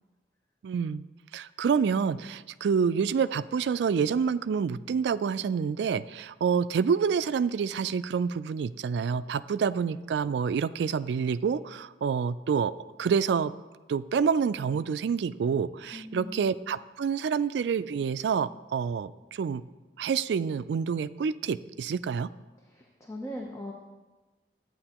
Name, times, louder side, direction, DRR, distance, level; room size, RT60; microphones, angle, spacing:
voice 1, 0.6-1.0 1.3-12.7 13.0-13.5 13.9-19.6 20.0-22.3, right 6 dB, 75° right, 14 dB, 0.3 m, -27 dB
voice 2, 15.9-16.5 22.6-23.7, left 1 dB, 15° left, 0 dB, 0.7 m, -40 dB
13.0 x 8.7 x 2.9 m, 1.2 s
head